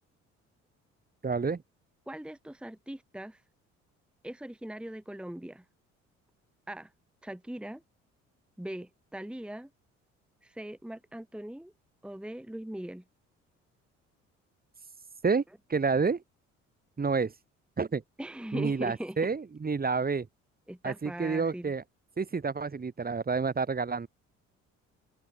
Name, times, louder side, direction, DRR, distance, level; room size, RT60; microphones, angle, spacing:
voice 1, 1.2-1.6 15.2-15.4 15.7-16.2 17.0-17.3 17.8-18.0 18.5-20.3 20.8-21.8 22.2-24.1, right 4 dB, 25° right, 2.0 m, -29 dB
voice 2, 2.1-3.4 4.2-5.6 6.7-6.9 7.2-7.8 8.6-9.7 10.4-11.7 12.0-13.0 18.2-19.2 20.7-21.7, right 1 dB, 5° right, 1.5 m, -40 dB
open air
figure-of-eight pair, 50°, 37 cm